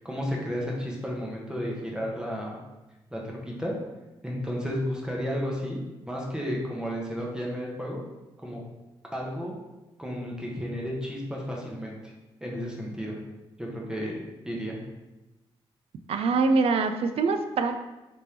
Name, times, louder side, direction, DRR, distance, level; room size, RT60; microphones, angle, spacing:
voice 1, 0.0-2.6 3.1-3.7 4.2-8.0 8.4-8.6 9.1-9.5 10.0-12.1 12.4-13.2 13.6-14.2 14.4-14.8, equal, 5° right, -2 dB, 0.9 m, -32 dB
voice 2, 16.1-17.8, right 4 dB, 65° right, 7 dB, 0.4 m, -24 dB
3.4 x 3.4 x 2.8 m, 1.0 s
cardioid pair, 80°, 11 cm